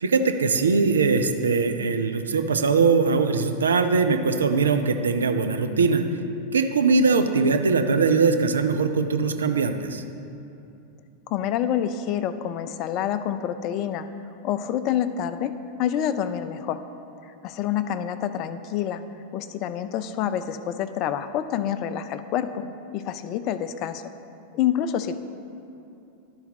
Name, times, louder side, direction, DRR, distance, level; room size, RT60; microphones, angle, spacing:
voice 1, 0.0-6.0 6.5-10.0, right 4 dB, 70° right, 7 dB, 0.5 m, -21 dB
voice 2, 11.3-14.1 14.4-15.5 15.8-16.8 17.4-19.0 19.3-22.6 22.9-24.0 24.5-25.2, left 10 dB, 40° left, 12 dB, 0.3 m, -27 dB
11.5 x 4.0 x 4.1 m, 2.8 s
figure-of-eight pair, 90°, 0 cm